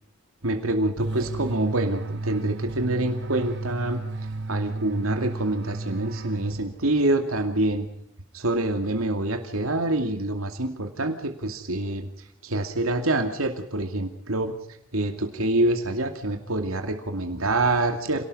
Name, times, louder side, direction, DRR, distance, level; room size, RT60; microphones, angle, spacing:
voice 1, 0.4-4.0 4.5-7.9 8.3-12.1 12.4-14.6 14.9-18.2, right 2 dB, 85° right, 5 dB, 2.5 m, -26 dB
sound 1, 1.0-7.1, right 2 dB, 55° right, 1.8 m, -33 dB
28.0 x 19.0 x 5.6 m, 0.70 s
head